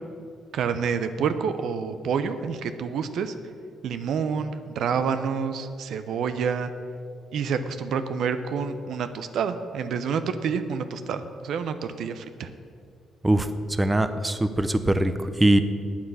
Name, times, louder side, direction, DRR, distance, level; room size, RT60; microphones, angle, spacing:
voice 1, 0.5-3.4 3.8-6.7 7.3-12.5, right 6 dB, 70° right, 10 dB, 0.8 m, -28 dB
voice 2, 13.2-15.6, right 1 dB, 15° right, 10 dB, 0.7 m, -22 dB
9.6 x 8.9 x 8.2 m, 2.3 s
cardioid pair, 90°, 0 cm